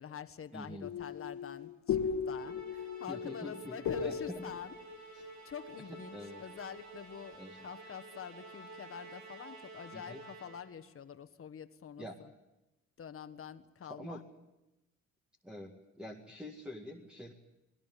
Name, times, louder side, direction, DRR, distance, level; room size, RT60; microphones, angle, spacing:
voice 1, 0.0-4.8 5.1-12.3 13.0-14.2, left 8 dB, 45° left, 12 dB, 1.5 m, -47 dB
voice 2, 0.5-0.9 3.1-4.4 5.1-5.3 6.1-6.4 7.3-7.7 9.9-10.2 12.0-12.2 13.9-14.2 15.4-17.3, left 1 dB, 5° right, 2 dB, 2.0 m, -45 dB
sound 1, 0.8-6.4, left 7 dB, 70° left, 1.7 m, -38 dB
Musical instrument, 2.3-10.8, right 3 dB, 65° right, 5.6 m, -51 dB
20.0 x 19.5 x 9.3 m, 0.98 s
cardioid pair, 90°, 30 cm